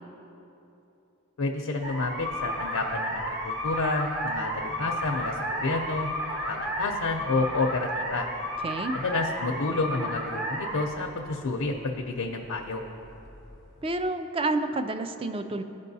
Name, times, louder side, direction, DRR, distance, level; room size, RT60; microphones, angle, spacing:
voice 1, 1.4-6.1 6.5-8.3 8.9-12.8, left 3 dB, 85° left, 2 dB, 0.6 m, -29 dB
sound 1, 1.8-14.1, equal, 55° right, 1.3 m, -33 dB
voice 2, 8.6-8.9 13.8-15.6, right 2 dB, 25° right, 9 dB, 0.3 m, -29 dB
15.0 x 5.3 x 2.7 m, 2.9 s
head